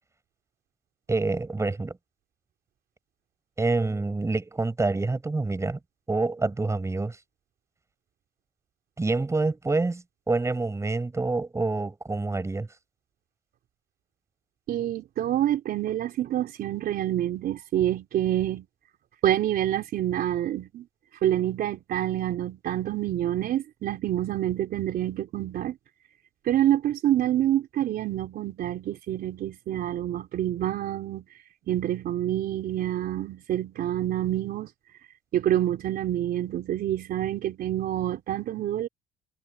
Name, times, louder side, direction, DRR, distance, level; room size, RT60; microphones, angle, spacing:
voice 1, 1.1-2.0 3.6-5.8 6.1-7.2 9.0-12.7, right 3 dB, 15° right, 7.5 m, -27 dB
voice 2, 14.7-18.7 19.2-20.9 21.2-25.8 26.5-31.2 31.7-34.7 35.3-38.9, right 12 dB, 65° right, 3.7 m, -27 dB
cardioid pair, 110°, 17 cm